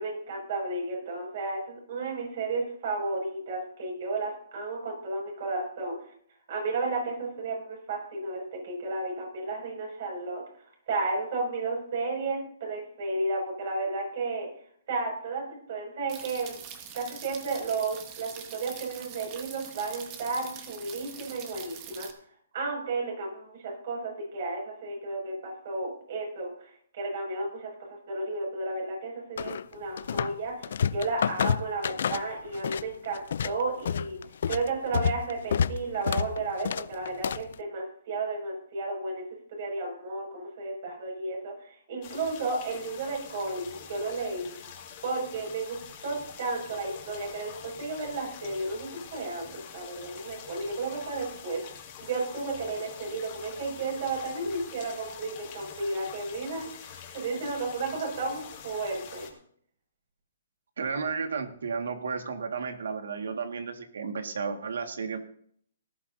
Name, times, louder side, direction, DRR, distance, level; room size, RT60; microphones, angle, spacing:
voice 1, 0.0-6.1 6.5-14.5 14.9-16.6 16.9-22.1 22.5-27.7 28.1-34.2 34.5-44.6 45.0-51.6 52.0-59.3, right 3 dB, 45° right, 0 dB, 6.3 m, -33 dB
sound 1, 16.1-22.1, right 8 dB, 25° right, 1.2 m, -44 dB
sound 2, 29.4-30.4 30.6-32.9 33.1-37.5, left 7 dB, 60° left, 0.4 m, -29 dB
sound 3, 42.0-59.3, left 8 dB, 30° left, 2.2 m, -46 dB
voice 2, 60.8-65.2, right 5 dB, 75° right, 6 dB, 1.8 m, -33 dB
18.5 x 12.0 x 2.7 m, 0.62 s
hypercardioid pair, 165°, 0 cm